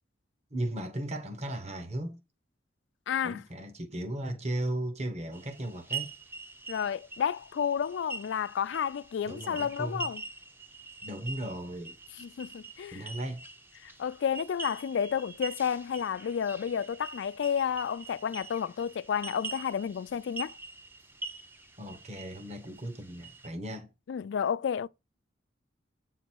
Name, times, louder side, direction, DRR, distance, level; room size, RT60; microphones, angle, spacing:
voice 1, 0.5-2.2 3.2-6.1 9.3-10.1 11.0-12.0 12.9-13.4 21.8-23.9, right 1 dB, 35° right, 1.1 m, -36 dB
voice 2, 3.1-3.4 6.7-10.2 12.2-13.1 13.8-20.6 24.1-24.9, left 7 dB, 75° left, 0.3 m, -31 dB
sound 1, 5.3-23.5, right 4 dB, 10° right, 0.5 m, -44 dB
8.1 x 4.0 x 4.5 m
head